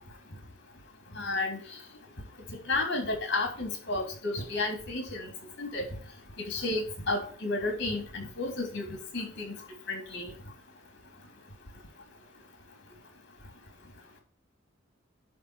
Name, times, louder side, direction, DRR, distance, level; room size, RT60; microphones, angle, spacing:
voice 1, 1.2-1.6 2.7-5.3 5.6-5.9 6.5-9.5 9.9-10.3, left 2 dB, 60° left, 3 dB, 3.3 m, -32 dB
11.0 x 3.8 x 6.3 m, 0.41 s
head